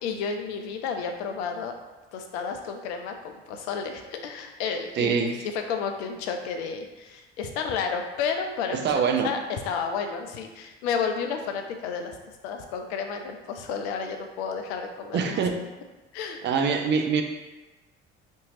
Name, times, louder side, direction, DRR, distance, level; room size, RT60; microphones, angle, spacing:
voice 1, 0.0-1.7 2.1-12.2 12.4-15.4 16.1-16.4, left 6 dB, 70° left, 5 dB, 0.5 m, -31 dB
voice 2, 5.0-5.4 8.7-9.3 15.1-15.6 16.4-17.2, right 6 dB, 35° right, 5 dB, 0.4 m, -24 dB
2.8 x 2.6 x 2.7 m, 1.1 s
figure-of-eight pair, 55°, 33 cm